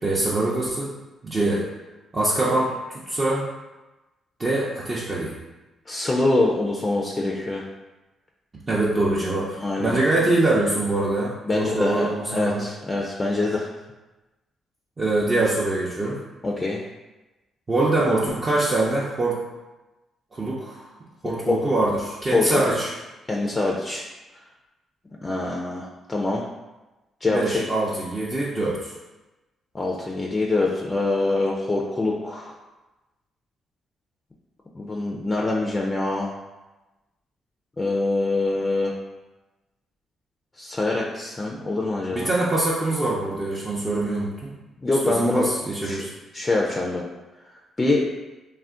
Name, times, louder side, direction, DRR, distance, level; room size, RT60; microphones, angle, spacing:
voice 1, 0.0-0.9 1.2-1.6 2.1-3.4 4.4-5.4 8.7-12.7 15.0-16.2 17.7-19.4 20.3-20.9 21.2-22.9 27.3-28.9 42.1-44.5 45.0-46.1, right 2 dB, 35° right, -6 dB, 0.5 m, -24 dB
voice 2, 5.9-7.6 9.6-9.9 11.4-13.7 16.4-16.8 21.2-21.6 22.3-22.6 23.3-24.0 25.2-26.4 27.2-27.6 29.7-32.5 34.8-36.3 37.8-39.0 40.6-42.3 44.8-45.6 45.8-46.1 46.3-47.0 47.8-48.1, left 2 dB, 30° left, -1 dB, 0.4 m, -24 dB
2.4 x 2.1 x 3.6 m, 1.1 s
supercardioid pair, 65°, 0 cm